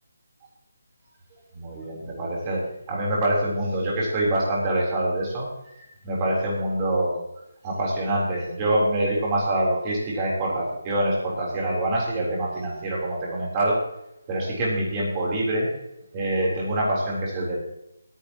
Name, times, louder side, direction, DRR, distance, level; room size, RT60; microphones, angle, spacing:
voice 1, 1.5-2.6 2.9-5.5 6.0-7.2 7.6-13.8 14.3-15.7 16.1-17.6, right 1 dB, 20° right, -4 dB, 3.8 m, -25 dB
19.5 x 10.0 x 3.0 m, 0.84 s
hypercardioid pair, 175°, 0 cm